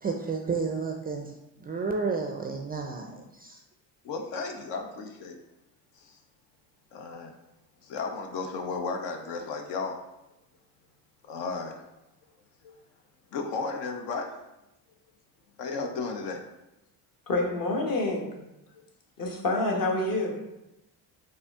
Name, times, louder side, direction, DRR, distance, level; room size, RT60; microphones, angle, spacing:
voice 1, 0.0-3.6, right 4 dB, 20° right, 2 dB, 0.3 m, -32 dB
voice 2, 4.0-5.4 6.0-6.2 6.9-7.3 7.8-10.0 11.2-11.9 12.6-12.7 13.3-14.3 15.6-16.4 18.7-18.8, left 4 dB, 70° left, 4 dB, 0.7 m, -34 dB
voice 3, 17.3-18.3 19.2-20.5, left 2 dB, 45° left, 0 dB, 1.2 m, -27 dB
4.1 x 2.7 x 3.5 m, 0.93 s
supercardioid pair, 75°, 45 cm